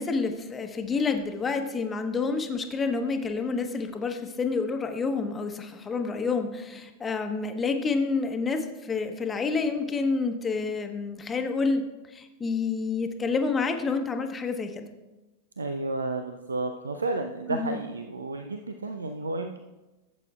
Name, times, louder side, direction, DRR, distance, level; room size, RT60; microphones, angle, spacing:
voice 1, 0.0-14.9 17.5-17.8, left 4 dB, 20° left, 6 dB, 1.0 m, -28 dB
voice 2, 15.6-19.6, right 2 dB, 75° right, 7 dB, 0.5 m, -32 dB
15.5 x 8.2 x 2.4 m, 1.1 s
figure-of-eight pair, 90°, 0 cm